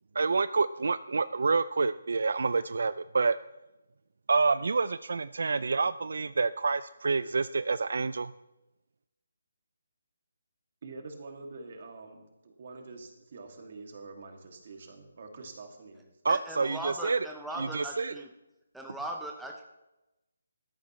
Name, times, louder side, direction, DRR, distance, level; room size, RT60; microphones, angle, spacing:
voice 1, 0.2-3.4 4.3-8.3 16.2-17.2 17.6-18.1, right 4 dB, 70° right, 15 dB, 0.4 m, -28 dB
voice 2, 10.8-16.0, right 3 dB, 45° right, 3 dB, 2.3 m, -46 dB
voice 3, 16.3-18.3 18.7-19.7, right 1 dB, ahead, 1 dB, 0.6 m, -39 dB
16.0 x 13.0 x 3.1 m, 0.99 s
hypercardioid pair, 165°, 0 cm